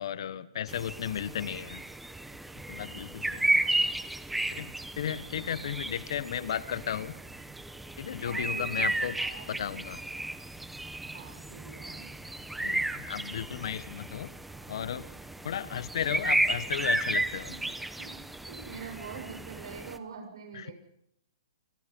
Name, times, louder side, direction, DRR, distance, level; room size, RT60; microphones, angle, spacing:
voice 1, 0.0-1.8 2.7-3.6 4.5-4.7 5.0-7.1 8.0-9.2 9.5-10.0 12.6-14.3 14.7-15.1 15.4-17.6 20.5-20.7, left 9 dB, 65° left, 14 dB, 1.4 m, -34 dB
sound 1, 0.7-20.0, right 2 dB, 5° right, 1.1 m, -33 dB
voice 2, 8.2-8.9 9.2-9.6 11.0-12.1 14.6-14.7 17.6-17.7 18.0-18.1 18.5-20.7, right 6 dB, 70° right, 4 dB, 7.3 m, -44 dB
29.5 x 21.5 x 5.5 m, 0.77 s
hypercardioid pair, 145°, 3 cm